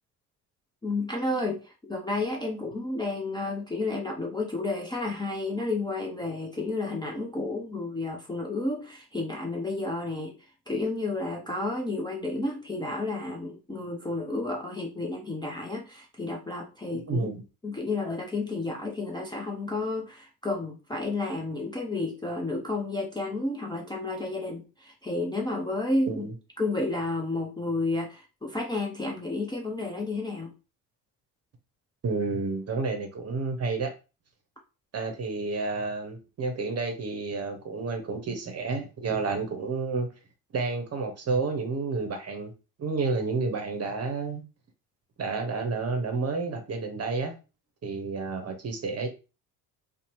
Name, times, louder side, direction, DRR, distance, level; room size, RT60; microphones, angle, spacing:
voice 1, 0.8-10.3 10.7-17.3 17.6-26.3 26.6-30.5, left 2 dB, 10° left, 0.5 m, -31 dB
voice 2, 16.9-17.4 26.1-26.3 32.0-33.9 34.9-40.1 40.5-42.5 42.8-44.4 45.2-47.3 47.8-49.1, right 4 dB, 35° right, 0.8 m, -30 dB
2.8 x 2.0 x 3.0 m
hypercardioid pair, 55°, 46 cm